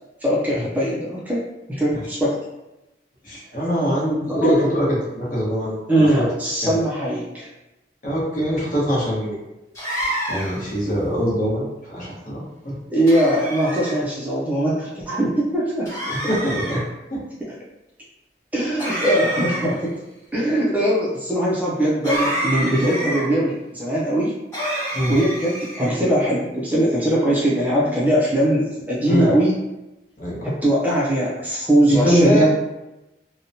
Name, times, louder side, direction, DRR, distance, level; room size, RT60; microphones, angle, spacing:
voice 1, 0.2-1.4 1.7-2.4 4.3-4.7 5.9-7.5 12.9-15.9 17.4-17.5 18.5-19.9 20.3-24.3 25.1-29.5 30.4-32.4, right 1 dB, 10° right, -6 dB, 0.4 m, -21 dB
voice 2, 3.2-6.3 6.6-6.8 8.0-9.4 10.3-12.8 16.3-16.8 17.1-17.2 24.9-25.1 29.1-29.3 30.2-30.5 31.9-32.4, equal, 50° left, -6 dB, 0.9 m, -22 dB
sound 1, 9.7-10.7 13.1-14.0 15.8-16.8 18.8-19.9 22.0-23.2 24.5-25.9, right 1 dB, 15° left, 1.0 m, -27 dB
2.8 x 2.1 x 2.6 m, 0.97 s
head